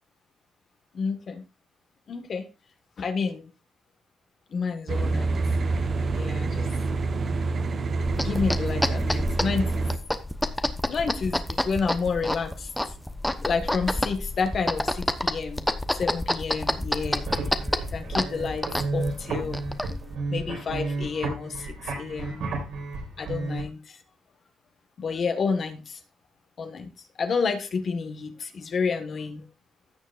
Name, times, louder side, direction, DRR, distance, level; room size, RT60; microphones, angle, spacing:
voice 1, 0.9-1.4 2.1-2.4 3.0-3.5 4.5-5.4 6.1-6.7 8.2-9.9 10.9-12.7 13.4-15.7 15.9-17.3 17.9-19.7 20.3-22.5 23.2-24.0 25.0-26.0 26.6-26.9 27.2-29.5, left 5 dB, 50° left, 7 dB, 1.5 m, -30 dB
sound 1, 4.9-10.0, right 3 dB, 45° right, 1.0 m, -27 dB
sound 2, 8.0-20.2, left 1 dB, 5° left, 0.9 m, -29 dB
sound 3, 16.9-23.6, right 3 dB, 75° right, 4.2 m, -32 dB
16.0 x 6.7 x 2.5 m, 0.28 s
cardioid pair, 90°, 0 cm